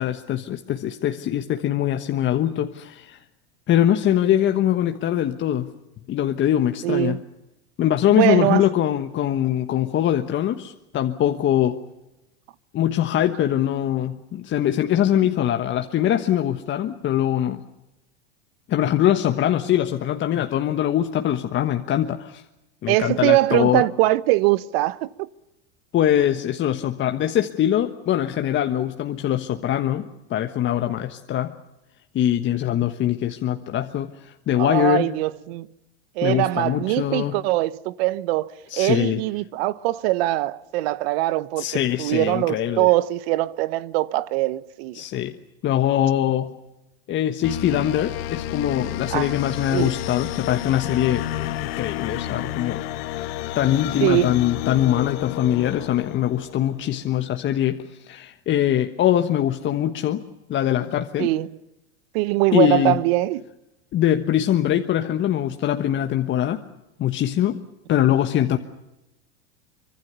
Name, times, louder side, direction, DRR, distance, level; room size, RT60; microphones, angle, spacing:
voice 1, 0.0-3.2 3.7-5.7 6.1-7.2 7.8-11.8 12.7-17.6 18.7-22.4 22.8-23.8 25.9-31.5 32.1-35.1 36.2-37.4 38.7-39.2 41.6-42.9 44.9-45.3 45.6-46.5 47.1-52.8 53.5-60.2 60.5-61.3 62.5-63.0 63.9-66.6 67.0-67.6 67.9-68.6, left 11 dB, 35° left, 1.3 m, -22 dB
voice 2, 6.8-7.2 8.1-8.7 22.9-25.3 34.6-35.7 36.2-45.0 49.1-49.3 49.7-49.9 54.0-54.4 61.2-61.5 62.1-63.4, right 17 dB, 65° right, 1.0 m, -22 dB
sound 1, 47.4-56.9, left 13 dB, 65° left, 1.3 m, -31 dB
25.0 x 23.5 x 7.0 m
supercardioid pair, 110°, 33 cm